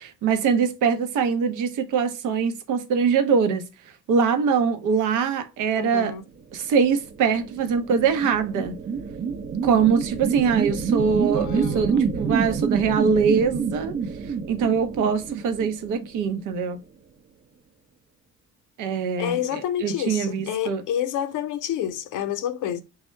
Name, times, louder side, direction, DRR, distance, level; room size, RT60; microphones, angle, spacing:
voice 1, 0.0-3.7 4.1-6.1 6.5-8.7 9.6-11.9 12.2-14.0 14.5-16.8 18.8-20.8, right 6 dB, 85° right, 0.7 m, -23 dB
voice 2, 5.8-6.2 11.3-12.1 19.2-22.8, left 10 dB, 90° left, 0.6 m, -29 dB
sound 1, 6.8-16.5, right 6 dB, 40° right, 0.6 m, -28 dB
3.5 x 2.0 x 4.3 m
cardioid pair, 90°, 30 cm